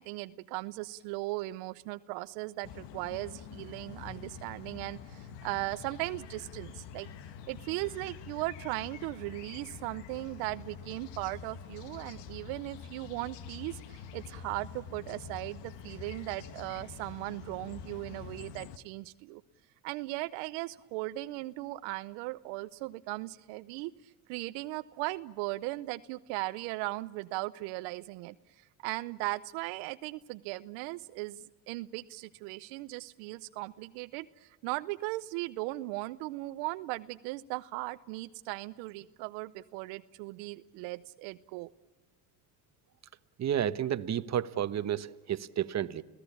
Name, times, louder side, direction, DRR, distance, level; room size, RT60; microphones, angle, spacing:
voice 1, 0.0-7.1 7.5-19.4 19.8-23.9 24.3-28.3 28.8-41.7, right 20 dB, 80° right, 0.8 m, -38 dB
sound 1, 2.6-18.8, left 7 dB, 70° left, 1.5 m, -46 dB
voice 2, 43.4-46.0, right 10 dB, 35° right, 1.1 m, -31 dB
30.0 x 16.5 x 8.5 m
supercardioid pair, 85°, 44 cm